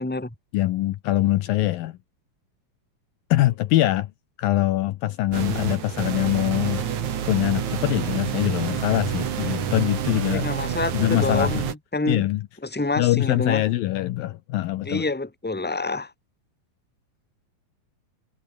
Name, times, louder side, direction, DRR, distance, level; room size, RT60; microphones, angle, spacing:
voice 1, 0.0-0.3 10.3-12.2 12.6-13.6 14.8-16.1, left 3 dB, 5° left, 2.6 m, -27 dB
voice 2, 0.5-2.0 3.3-4.1 4.4-6.8 7.3-10.5 10.9-11.6 12.1-12.4 13.0-15.1, left 16 dB, 75° left, 2.4 m, -23 dB
sound 1, 5.3-11.7, right 8 dB, 55° right, 3.2 m, -28 dB
omnidirectional pair, 4.5 m